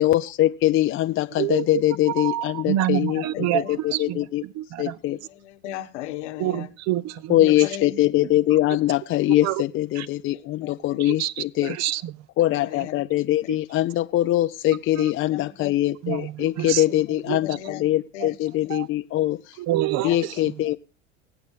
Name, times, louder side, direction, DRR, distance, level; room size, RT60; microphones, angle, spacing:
voice 1, 0.0-4.4 4.8-5.2 7.3-11.8 12.4-19.6 20.0-20.8, left 14 dB, 40° left, 0.5 m, -22 dB
voice 2, 1.4-1.8 2.2-5.0 6.4-7.5 9.4-9.6 10.0-10.1 11.0-12.1 15.0-15.1 16.0-16.8 17.3-17.4 18.7-18.9 19.6-20.4, right 13 dB, 50° right, 0.7 m, -27 dB
voice 3, 5.3-6.7 7.6-8.1 10.6-10.8 12.7-12.9 15.3-15.7 17.4-17.8 18.1-18.3 20.0-20.1, left 12 dB, 75° left, 1.4 m, -36 dB
21.5 x 7.9 x 3.6 m
hypercardioid pair, 90°, 35 cm